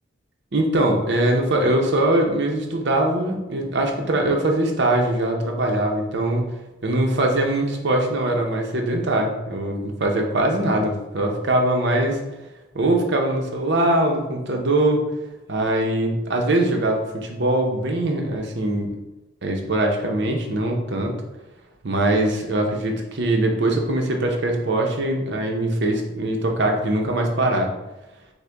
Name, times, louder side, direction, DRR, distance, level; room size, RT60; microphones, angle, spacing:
voice 1, 0.5-6.4 6.8-12.2 12.7-15.0 15.5-18.9 19.4-21.1 21.8-27.7, right 1 dB, 60° right, 2 dB, 0.7 m, -22 dB
6.5 x 2.2 x 3.4 m, 1.0 s
head